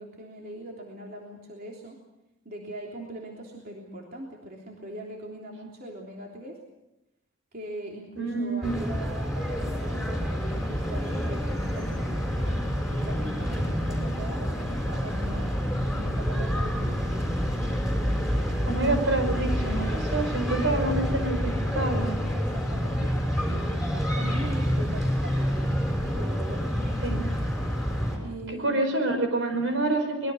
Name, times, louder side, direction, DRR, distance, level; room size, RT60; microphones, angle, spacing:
voice 1, 0.0-2.0 2.4-6.6 7.5-12.6 12.9-15.5 15.9-17.3 22.3-23.7 24.1-25.7 26.1-26.7 27.1-27.2 28.2-28.9, right 1 dB, 45° right, -1 dB, 3.3 m, -41 dB
voice 2, 8.2-8.8 18.7-22.1 27.0-27.2 28.5-30.3, right 2 dB, 70° right, 6 dB, 5.0 m, -27 dB
sound 1, 8.6-28.2, equal, ahead, 6.0 m, -28 dB
25.0 x 21.5 x 6.4 m, 0.95 s
head